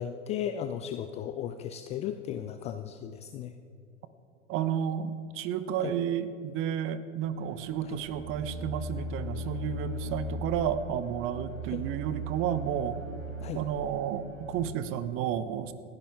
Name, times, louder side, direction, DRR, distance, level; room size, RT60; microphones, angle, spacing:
voice 1, 0.0-3.5 5.8-5.9 7.9-8.0 11.7-11.8 13.4-13.6, left 9 dB, 20° left, 9 dB, 0.4 m, -35 dB
voice 2, 4.5-13.0 13.5-15.7, right 9 dB, 35° right, 13 dB, 0.9 m, -31 dB
sound 1, 7.3-14.7, equal, 60° right, 4.1 m, -39 dB
28.5 x 10.5 x 3.6 m, 2.6 s
figure-of-eight pair, 95°, 39 cm